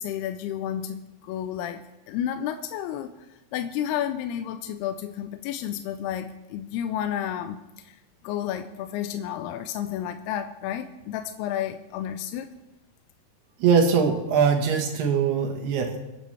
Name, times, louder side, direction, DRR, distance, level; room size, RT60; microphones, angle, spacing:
voice 1, 0.0-3.1 3.5-7.9 8.2-12.5, left 10 dB, 85° left, 8 dB, 2.6 m, -31 dB
voice 2, 13.6-16.0, right 6 dB, 80° right, 2 dB, 3.5 m, -22 dB
25.5 x 9.1 x 3.3 m, 0.99 s
omnidirectional pair, 4.6 m